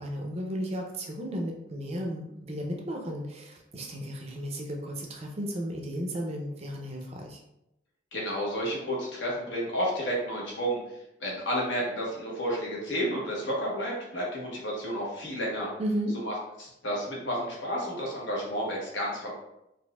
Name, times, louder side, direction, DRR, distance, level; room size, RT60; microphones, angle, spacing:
voice 1, 0.0-7.4 15.8-16.2, equal, 35° right, 1 dB, 0.5 m, -34 dB
voice 2, 8.1-10.8 11.2-15.7 16.1-19.3, equal, 80° left, -4 dB, 1.1 m, -31 dB
4.1 x 2.5 x 2.2 m, 0.85 s
head